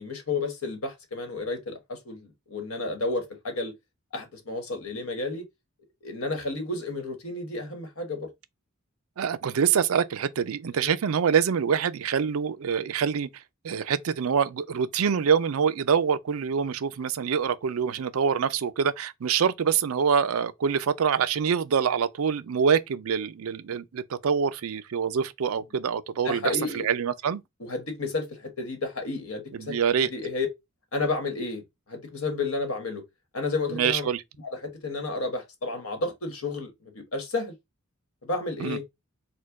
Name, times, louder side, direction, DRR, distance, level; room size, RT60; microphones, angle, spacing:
voice 1, 0.0-3.7 4.1-5.4 6.0-8.3 10.7-10.9 26.2-26.9 27.6-29.8 30.0-30.5 30.9-33.0 33.3-34.1 34.4-37.5 38.2-38.8, left 3 dB, 90° left, 1.5 m, -31 dB
voice 2, 9.2-13.3 13.6-27.4 29.6-30.1 33.7-34.2 38.6-38.8, right 7 dB, 85° right, 0.4 m, -25 dB
4.3 x 2.2 x 4.6 m
head